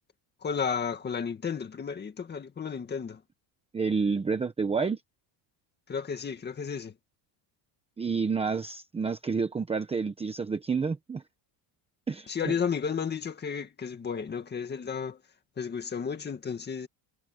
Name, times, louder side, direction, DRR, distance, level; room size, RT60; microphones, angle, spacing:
voice 1, 0.4-3.2 5.9-6.9 12.3-15.2 15.6-16.9, left 6 dB, 20° left, 2.0 m, -33 dB
voice 2, 3.7-5.0 8.0-11.2 12.1-12.5, right 5 dB, 10° right, 0.9 m, -29 dB
cardioid pair, 170°, 50 cm